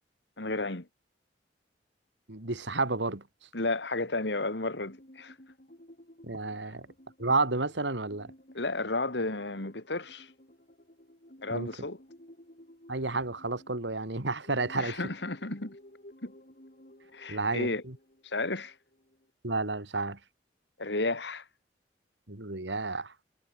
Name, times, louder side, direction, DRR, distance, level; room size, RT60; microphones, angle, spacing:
voice 1, 0.4-0.9 3.5-5.3 8.5-10.3 11.4-12.0 14.7-15.8 16.2-16.3 17.1-17.8 18.2-18.7 20.8-21.4, left 2 dB, 75° left, 2.6 m, -32 dB
voice 2, 2.3-3.2 6.2-6.9 7.2-8.3 11.5-11.7 12.9-15.0 17.3-18.0 19.4-20.2 22.3-23.1, right 3 dB, 85° right, 2.8 m, -31 dB
sound 1, 4.9-19.3, left 1 dB, 50° left, 7.3 m, -55 dB
head